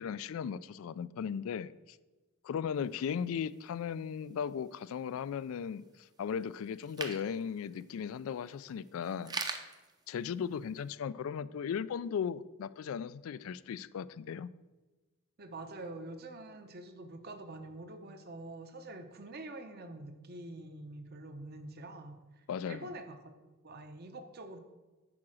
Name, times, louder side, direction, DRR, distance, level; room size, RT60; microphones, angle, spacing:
voice 1, 0.0-2.0 2.4-9.3 10.1-14.5 22.5-22.9, left 7 dB, 70° left, 0.3 m, -37 dB
sound 1, 2.8-10.9, right 4 dB, 20° right, 0.6 m, -47 dB
voice 2, 15.4-23.2 23.6-24.6, right 2 dB, 45° right, 0.8 m, -46 dB
8.6 x 4.8 x 6.3 m
head